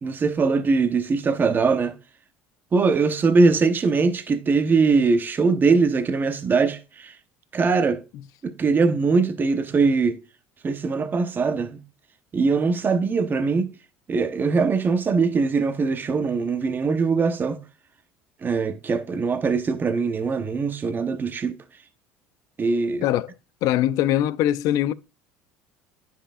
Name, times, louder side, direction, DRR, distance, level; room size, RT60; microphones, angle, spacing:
voice 1, 0.0-1.9 2.7-7.1 7.5-8.0 8.4-10.2 10.6-11.8 12.3-13.7 14.1-17.6 18.4-21.6 22.6-23.1, right 4 dB, 30° right, 0.9 m, -21 dB
voice 2, 23.0-23.3 23.6-24.9, left 12 dB, 65° left, 0.4 m, -22 dB
9.8 x 5.6 x 2.4 m
supercardioid pair, 95°, 7 cm